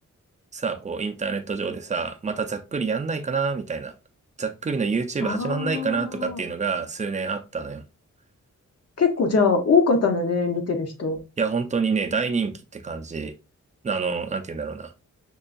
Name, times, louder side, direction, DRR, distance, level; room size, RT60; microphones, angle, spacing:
voice 1, 0.5-3.9 4.4-7.8 11.4-13.3 13.8-14.9, right 5 dB, 25° right, 0.4 m, -27 dB
voice 2, 5.2-6.4 9.0-11.2, left 4 dB, 55° left, 0.8 m, -22 dB
5.3 x 2.3 x 2.5 m
wide cardioid pair, 155°, 30 cm